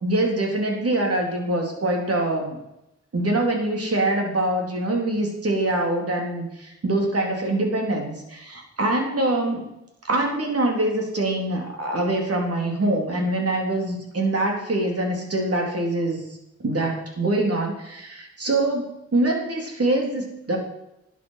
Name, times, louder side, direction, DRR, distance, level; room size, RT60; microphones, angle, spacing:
voice 1, 0.0-2.6 3.1-9.7 10.0-16.2 16.6-20.6, right 2 dB, 55° right, 1 dB, 3.8 m, -24 dB
11.5 x 9.9 x 5.8 m, 0.86 s
cardioid pair, 80°, 29 cm